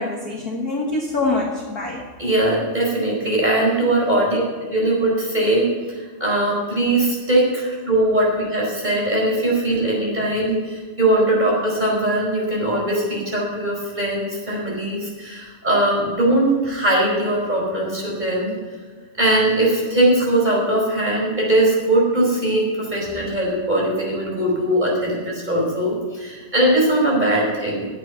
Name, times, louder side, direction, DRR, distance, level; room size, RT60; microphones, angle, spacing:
voice 1, 0.0-2.1 4.1-4.2, left 2 dB, 45° left, -1 dB, 1.2 m, -25 dB
voice 2, 2.2-4.4 4.7-18.5 19.2-27.9, right 1 dB, 10° right, -4 dB, 4.9 m, -20 dB
12.0 x 8.4 x 9.7 m, 1.4 s
omnidirectional pair, 3.7 m